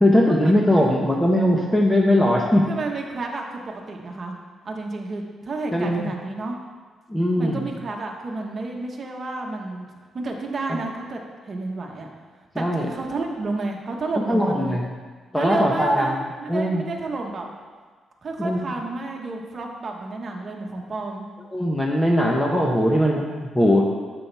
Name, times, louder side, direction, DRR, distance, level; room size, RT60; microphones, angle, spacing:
voice 1, 0.0-2.7 5.7-6.0 7.1-7.6 12.5-12.9 14.3-14.8 15.3-16.2 16.5-16.8 18.4-18.6 21.5-23.8, left 1 dB, 5° left, -1 dB, 1.0 m, -20 dB
voice 2, 2.6-4.4 4.6-6.6 7.4-9.9 10.1-12.1 12.5-14.8 15.3-17.5 18.2-21.3, right 3 dB, 40° right, 1 dB, 1.3 m, -31 dB
9.9 x 7.2 x 3.5 m, 1.5 s
cardioid pair, 100°, 0 cm